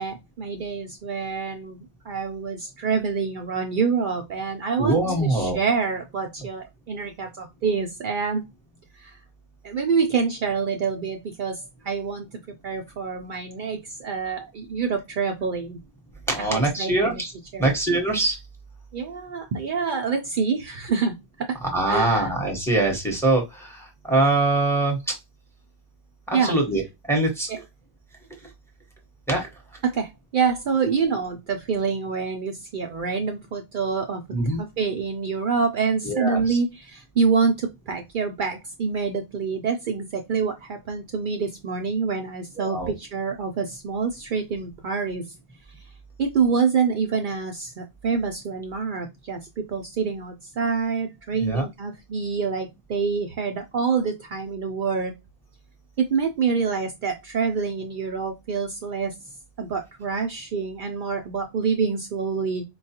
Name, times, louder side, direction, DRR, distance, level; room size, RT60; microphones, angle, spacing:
voice 1, 0.0-8.4 9.0-9.2 9.6-12.3 12.6-15.8 16.4-17.2 17.5-17.8 18.9-21.5 21.9-22.3 26.3-26.6 27.5-27.6 29.8-34.2 34.6-45.2 46.2-55.2 56.0-59.1 59.6-62.6, right 5 dB, 60° right, 4 dB, 0.6 m, -26 dB
voice 2, 4.8-5.6 16.3-17.3 17.6-18.3 21.6-25.0 26.3-26.8 27.1-27.5 29.3-29.5 34.3-34.6 36.0-36.6 42.6-42.9 51.4-51.6, right 2 dB, 5° left, 0 dB, 0.9 m, -23 dB
4.5 x 2.3 x 2.7 m, 0.21 s
omnidirectional pair, 1.1 m